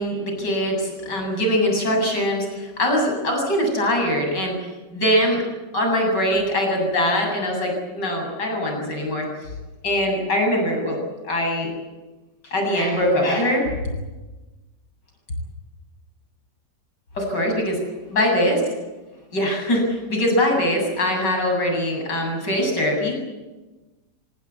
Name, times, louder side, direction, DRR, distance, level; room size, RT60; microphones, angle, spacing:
voice 1, 0.0-4.5 4.9-5.4 5.7-9.5 9.8-11.0 11.2-11.7 12.5-13.7 17.1-17.8 18.1-18.6 19.3-23.1, equal, 85° left, 2 dB, 8.5 m, -22 dB
27.5 x 18.5 x 8.4 m, 1.2 s
omnidirectional pair, 1.8 m